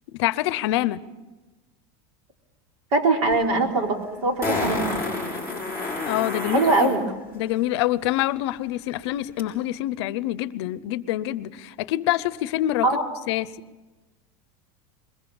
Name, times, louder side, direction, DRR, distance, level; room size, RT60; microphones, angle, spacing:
voice 1, 0.1-1.0 6.1-6.9 7.3-13.0 13.3-13.5, left 15 dB, 60° left, 17 dB, 0.7 m, -26 dB
voice 2, 2.9-4.8 6.5-7.0 12.8-13.0, right 3 dB, 80° right, 3 dB, 3.9 m, -22 dB
Fart, 3.3-3.4 4.4-7.0 9.4-9.5, left 2 dB, 15° right, 5.8 m, -28 dB
22.0 x 22.0 x 7.2 m, 1.2 s
supercardioid pair, 180°, 16 cm